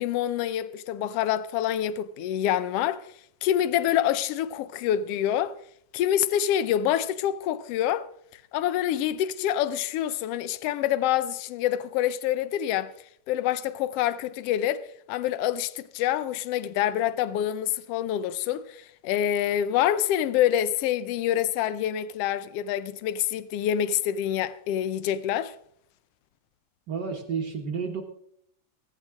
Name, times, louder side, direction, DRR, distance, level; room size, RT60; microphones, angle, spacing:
voice 1, 0.0-3.1 3.4-5.6 5.9-8.1 8.5-12.9 13.3-25.5, left 11 dB, 80° left, 1.4 m, -26 dB
voice 2, 26.9-28.0, right 6 dB, 55° right, 1.2 m, -31 dB
15.5 x 15.0 x 3.6 m
omnidirectional pair, 3.4 m